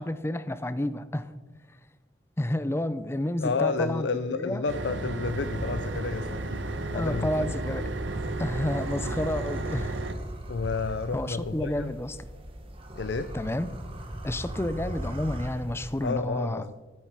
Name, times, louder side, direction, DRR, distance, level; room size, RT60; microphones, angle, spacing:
voice 1, 0.0-1.3 2.4-4.1 4.3-4.6 6.9-7.9 8.4-10.0 11.1-12.2 13.3-13.7 14.2-16.6, left 1 dB, 15° left, 14 dB, 0.5 m, -30 dB
voice 2, 3.4-6.4 6.9-7.5 10.5-12.0 13.0-13.3 16.0-16.7, left 4 dB, 70° left, 11 dB, 0.5 m, -30 dB
sound 1, 4.7-10.1, right 2 dB, 85° right, 1.0 m, -33 dB
sound 2, 5.3-16.1, right 1 dB, 30° right, 1.4 m, -40 dB
12.5 x 9.9 x 4.7 m, 1.3 s
head